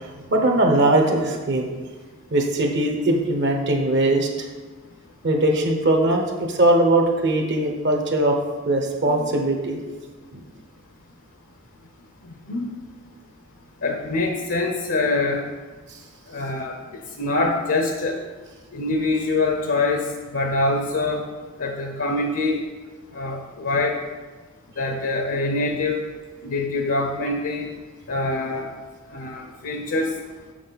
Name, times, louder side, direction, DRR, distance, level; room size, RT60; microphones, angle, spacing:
voice 1, 0.0-1.7 2.3-4.5 5.2-8.4 8.6-9.8 10.3-10.4, right 1 dB, 55° right, 2 dB, 0.9 m, -20 dB
voice 2, 13.8-15.4 16.3-16.8 17.2-18.2 18.7-21.3 21.6-22.6 23.1-24.0 24.8-26.0 26.4-27.7 28.1-28.7 29.1-30.1, left 2 dB, 65° left, 3 dB, 0.7 m, -24 dB
6.6 x 6.3 x 4.0 m, 1.3 s
head